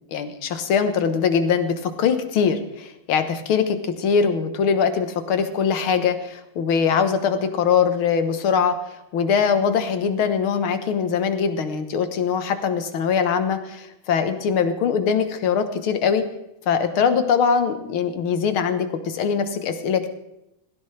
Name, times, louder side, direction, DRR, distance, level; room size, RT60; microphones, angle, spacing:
voice 1, 0.1-8.8 9.1-16.3 16.7-20.1, left 6 dB, 80° left, 9 dB, 2.0 m, -22 dB
16.5 x 16.5 x 3.3 m, 0.88 s
omnidirectional pair, 2.3 m